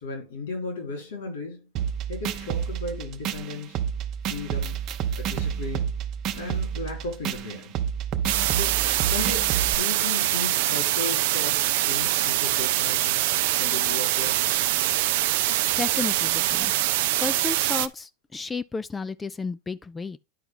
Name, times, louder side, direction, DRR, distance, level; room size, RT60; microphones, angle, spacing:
voice 1, 0.0-1.7 2.1-3.8 4.3-4.8 5.1-5.9 6.3-7.8 8.5-8.7 9.1-13.2 13.6-14.4, left 3 dB, 80° left, 4.3 m, -35 dB
sound 1, 1.8-9.7, right 8 dB, 50° right, 0.8 m, -29 dB
sound 2, 8.3-17.9, right 15 dB, 70° right, 0.5 m, -24 dB
voice 2, 15.8-16.7 17.2-20.2, left 4 dB, 20° left, 0.5 m, -32 dB
10.0 x 4.5 x 3.8 m
hypercardioid pair, 95°, 0 cm